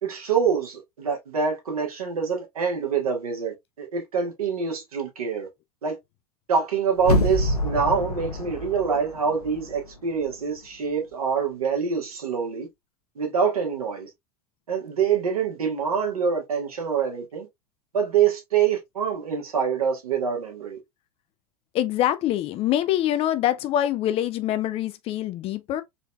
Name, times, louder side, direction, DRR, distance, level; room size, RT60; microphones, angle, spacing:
voice 1, 0.0-5.5 5.8-6.0 6.5-12.7 13.2-14.1 14.7-17.5 17.9-20.8, right 6 dB, 70° right, 1.4 m, -25 dB
sound 1, 7.0-9.9 10.3-10.4, left 1 dB, 80° left, 0.7 m, -26 dB
voice 2, 21.7-25.8, left 12 dB, 30° left, 0.4 m, -24 dB
4.0 x 3.1 x 2.2 m
figure-of-eight pair, 85°, 19 cm